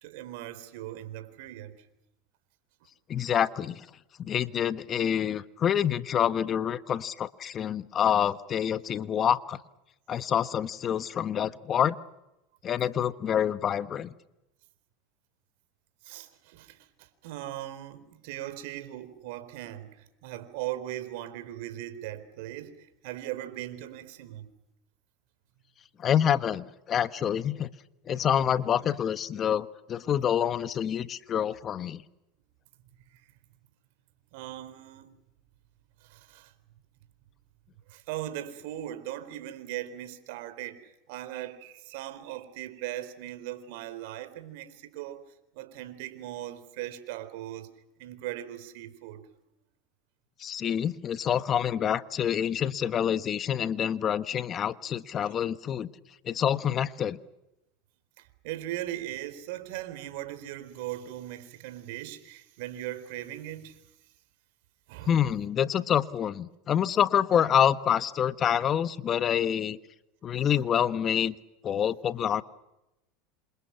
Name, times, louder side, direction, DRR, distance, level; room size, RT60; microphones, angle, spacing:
voice 1, 0.0-1.7 16.0-24.5 33.1-33.2 34.3-35.1 36.0-36.5 37.9-45.2 45.5-47.7 48.0-49.2 58.2-63.9 64.9-65.2, right 13 dB, 70° right, 4.2 m, -39 dB
voice 2, 3.1-3.9 4.2-9.6 10.1-11.9 12.6-14.1 26.0-27.7 28.1-32.0 50.4-55.9 56.2-57.2 65.1-69.8 70.2-71.3 71.6-72.4, left 9 dB, 35° left, 1.3 m, -27 dB
28.0 x 27.5 x 5.9 m
supercardioid pair, 110°, 0 cm